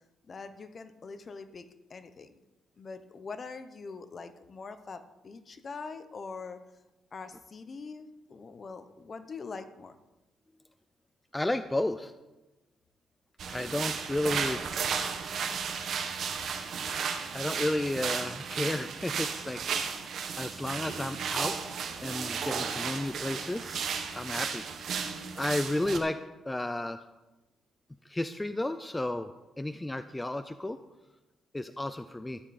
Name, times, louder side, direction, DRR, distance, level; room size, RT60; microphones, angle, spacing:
voice 1, 0.3-2.4 2.8-6.6 7.1-10.0, left 4 dB, 40° left, 11 dB, 1.0 m, -43 dB
voice 2, 11.3-12.1 13.5-14.6 16.9-21.6 22.0-24.6 25.0-26.2 26.5-27.0 28.1-29.3 29.6-30.8 31.5-32.4, left 1 dB, 10° left, 11 dB, 0.5 m, -33 dB
sound 1, 13.4-26.0, right 6 dB, 65° right, 1.5 m, -34 dB
13.5 x 9.8 x 4.3 m, 1.1 s
cardioid pair, 90°, 0 cm